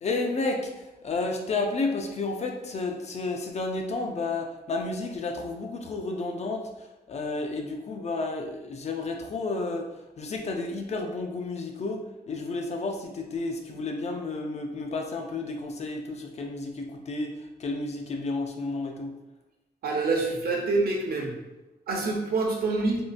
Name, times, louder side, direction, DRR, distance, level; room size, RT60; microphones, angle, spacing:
voice 1, 0.0-9.9 10.2-19.1, left 3 dB, 40° left, 2 dB, 0.4 m, -31 dB
voice 2, 19.8-21.3 21.9-23.0, right 3 dB, 65° right, 0 dB, 0.6 m, -26 dB
3.6 x 2.3 x 2.4 m, 1.0 s
wide cardioid pair, 180°, 17 cm